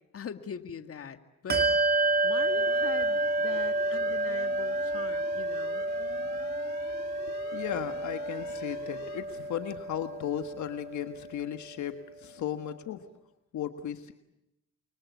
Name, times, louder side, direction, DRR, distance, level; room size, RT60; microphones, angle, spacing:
voice 1, 0.1-1.7 2.2-5.8, left 7 dB, 50° left, 9 dB, 2.2 m, -42 dB
Bell, 1.5-11.5, right 2 dB, 30° right, 2.8 m, -30 dB
sound 1, 2.4-9.2, left 7 dB, 90° left, 4.7 m, -49 dB
voice 2, 7.5-13.1 13.5-14.1, left 10 dB, 70° left, 8 dB, 1.6 m, -36 dB
29.5 x 24.0 x 8.4 m, 0.86 s
cardioid pair, 90°, 30 cm